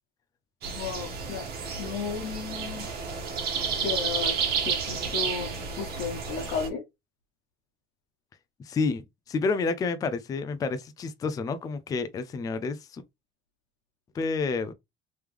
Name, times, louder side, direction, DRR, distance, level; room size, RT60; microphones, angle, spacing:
sound 1, 0.6-6.7, right 6 dB, 50° right, 1.3 m, -31 dB
voice 1, 0.7-1.4 1.8-2.9 3.8-6.8, left 6 dB, 90° left, 1.3 m, -34 dB
voice 2, 8.6-13.0 14.1-14.7, left 4 dB, 20° left, 0.3 m, -29 dB
3.4 x 3.1 x 3.3 m
cardioid pair, 170°, 20 cm